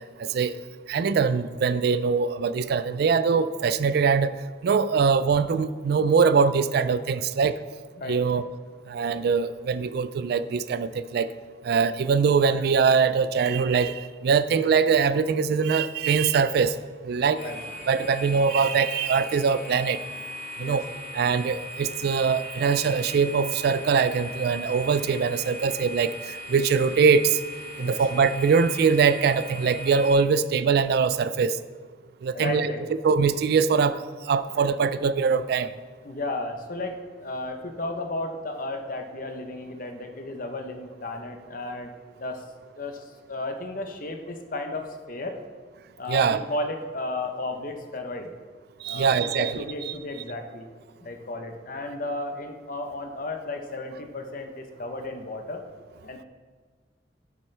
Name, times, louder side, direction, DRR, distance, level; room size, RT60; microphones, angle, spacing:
voice 1, 0.2-0.5 0.9-4.3 4.6-7.6 8.1-8.4 8.9-11.3 11.6-16.7 17.0-17.4 17.9-20.0 20.6-20.8 21.1-26.1 26.5-27.4 27.8-31.6 32.2-32.7 33.0-34.0 34.3-35.7 46.1-46.4 48.8-49.9, right 5 dB, 60° right, 14 dB, 0.3 m, -22 dB
voice 2, 8.0-8.4 17.4-17.6 20.6-20.8 27.8-28.0 32.3-33.0 36.0-41.9 42.2-42.4 42.8-45.4 46.0-48.3 48.8-50.7 51.0-55.6 56.0-56.2, left 2 dB, 50° left, 5 dB, 0.8 m, -34 dB
sound 1, 17.3-30.1, equal, 90° left, 2.6 m, -39 dB
9.9 x 7.3 x 3.3 m, 1.5 s
head